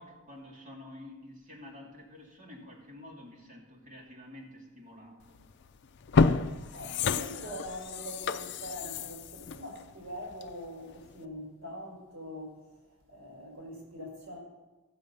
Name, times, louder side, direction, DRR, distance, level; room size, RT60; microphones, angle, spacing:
voice 1, 0.0-5.4 7.1-7.6, left 1 dB, 40° right, -2 dB, 2.5 m, -49 dB
sound 1, 5.4-5.5 6.0-10.7 11.1-11.2, left 4 dB, 55° left, 0.4 m, -30 dB
voice 2, 6.7-12.6 13.1-14.4, equal, 75° right, -2 dB, 4.6 m, -43 dB
15.0 x 6.7 x 5.4 m, 1.2 s
head